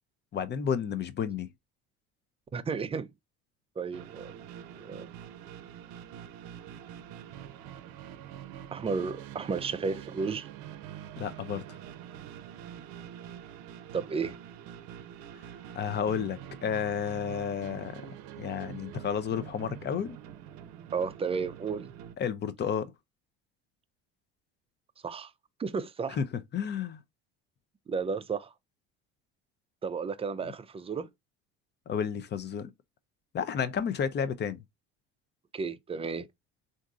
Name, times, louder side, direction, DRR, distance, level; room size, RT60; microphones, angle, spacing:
voice 1, 0.3-1.5 11.2-11.8 15.7-18.0 18.4-20.2 22.2-22.9 26.1-26.3 26.5-27.0 31.9-32.7 33.3-34.6, left 7 dB, 35° left, 0.6 m, -31 dB
voice 2, 2.5-3.1 3.8-4.4 4.8-5.1 8.7-10.5 13.9-14.4 20.9-21.9 25.0-25.3 25.6-26.2 27.9-28.5 29.8-31.1 35.5-36.3, right 5 dB, 20° right, 0.4 m, -33 dB
sound 1, 3.9-22.1, right 10 dB, 70° right, 0.6 m, -45 dB
3.6 x 2.6 x 2.4 m
supercardioid pair, 85°, 32 cm